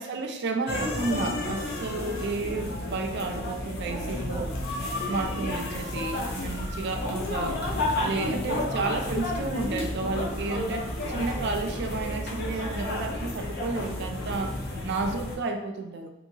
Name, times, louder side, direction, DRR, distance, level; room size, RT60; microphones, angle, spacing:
voice 1, 0.0-4.6 5.1-7.7 8.0-16.1, right 3 dB, 50° right, 4 dB, 0.4 m, -32 dB
sound 1, 0.7-15.4, left 1 dB, 45° left, 0.5 m, -31 dB
sound 2, 9.4-15.2, equal, 5° left, 0.6 m, -48 dB
2.8 x 2.7 x 2.6 m, 0.90 s
head